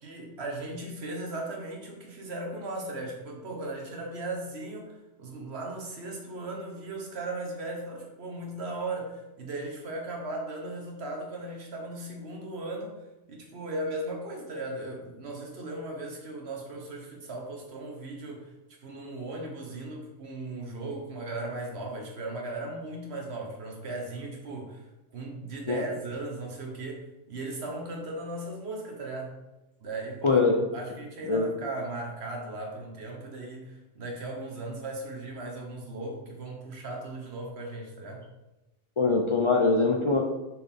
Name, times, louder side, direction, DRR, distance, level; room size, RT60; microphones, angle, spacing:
voice 1, 0.0-13.0 13.3-18.5 18.8-24.8 25.1-29.3 29.8-30.4 30.7-38.2, right 2 dB, 60° right, 1 dB, 1.4 m, -37 dB
voice 2, 30.2-30.6 31.3-31.5 39.0-40.2, left 3 dB, 40° left, 0 dB, 0.4 m, -23 dB
6.3 x 4.4 x 3.6 m, 1.0 s
omnidirectional pair, 1.2 m